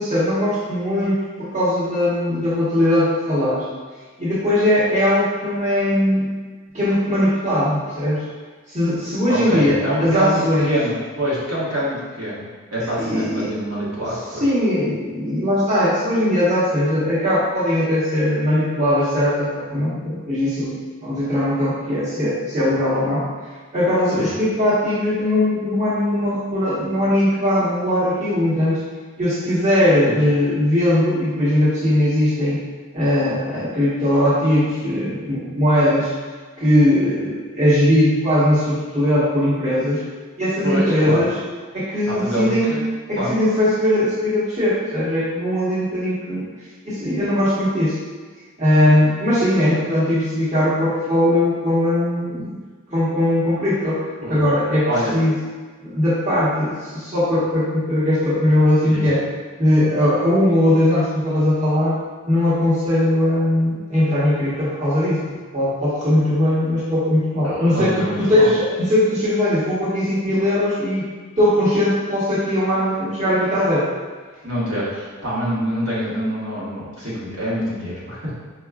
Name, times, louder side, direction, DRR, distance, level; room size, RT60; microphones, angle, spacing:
voice 1, 0.0-3.6 4.2-6.3 6.7-8.2 8.7-10.7 12.8-13.5 14.4-23.3 23.7-28.8 29.2-32.6 32.9-36.1 36.6-40.0 40.4-41.3 41.7-42.7 43.1-46.4 46.8-48.0 48.6-52.6 52.9-54.0 54.3-55.3 55.8-59.2 59.6-65.2 65.5-71.0 71.4-73.9, left 1 dB, 35° right, -11 dB, 1.1 m, -19 dB
voice 2, 9.3-12.5 12.7-14.4 24.1-24.3 30.0-30.2 40.6-41.3 42.1-42.8 43.2-43.3 54.2-54.4 54.9-55.1 58.9-59.0 67.4-68.5 74.4-78.3, equal, 85° right, -8 dB, 1.2 m, -25 dB
4.7 x 2.3 x 2.3 m, 1.4 s
head